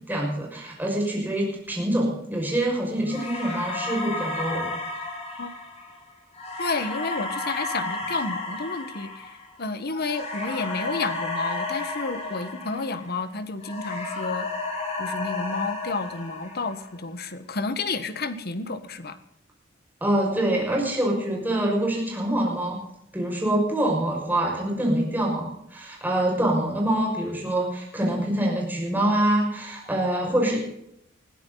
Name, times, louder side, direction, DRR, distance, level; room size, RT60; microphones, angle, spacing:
voice 1, 0.1-4.7 20.0-22.8 23.1-30.6, right 1 dB, 10° right, -1 dB, 6.2 m, -25 dB
sound 1, 3.1-13.3 13.6-17.0, left 3 dB, 35° left, 6.5 m, -33 dB
voice 2, 6.6-9.3 9.6-14.5 15.0-19.2, left 3 dB, 55° left, 11 dB, 1.5 m, -30 dB
21.0 x 15.0 x 4.1 m, 0.77 s
head